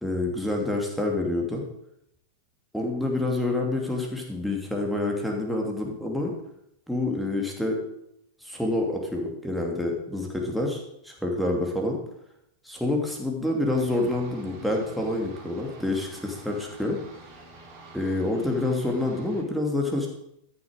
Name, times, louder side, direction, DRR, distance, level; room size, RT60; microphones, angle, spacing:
voice 1, 0.0-1.6 2.7-6.3 6.9-7.8 8.4-12.0 12.6-17.0 17.9-20.1, left 2 dB, ahead, 0 dB, 2.8 m, -27 dB
sound 1, 13.7-19.4, right 2 dB, 40° right, 3.8 m, -48 dB
13.5 x 6.9 x 6.4 m, 0.78 s
figure-of-eight pair, 90°, 0 cm